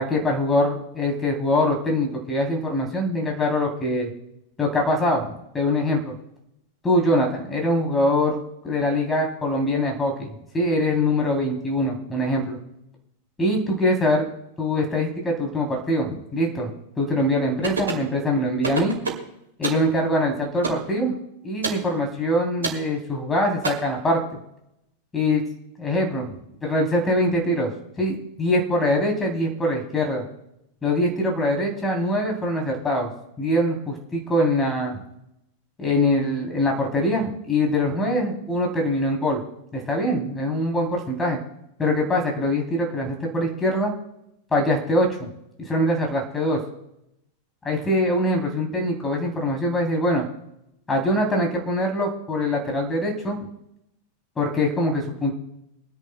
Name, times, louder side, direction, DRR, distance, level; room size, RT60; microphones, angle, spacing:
voice 1, 0.0-4.1 4.6-6.2 6.8-12.6 13.4-14.3 14.6-18.9 19.6-21.2 21.4-24.2 25.1-25.4 25.8-27.7 28.0-30.2 30.8-33.1 33.4-35.0 35.8-39.4 39.7-41.4 41.8-43.9 44.5-45.3 45.6-46.6 47.6-50.3 50.9-53.4 54.4-55.3, left 1 dB, 15° left, 1 dB, 3.2 m, -23 dB
sound 1, 17.6-18.1 18.6-19.3 19.6-19.9 20.6-20.9 21.6-21.8 22.6-22.8 23.6-23.7, right 4 dB, 70° right, 2.5 m, -27 dB
26.0 x 10.5 x 2.2 m, 0.81 s
figure-of-eight pair, 90°, 0 cm